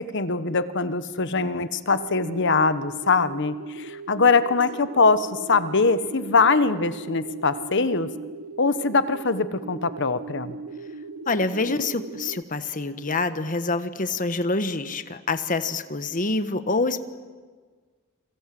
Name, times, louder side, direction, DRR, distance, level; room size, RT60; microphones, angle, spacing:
voice 1, 0.0-8.1 8.6-10.5, left 4 dB, 55° left, 12 dB, 1.2 m, -22 dB
sound 1, 1.9-12.4, right 3 dB, 85° right, 1.2 m, -38 dB
voice 2, 11.3-17.0, left 3 dB, 40° left, 10 dB, 1.4 m, -26 dB
29.5 x 23.5 x 7.8 m, 1.5 s
head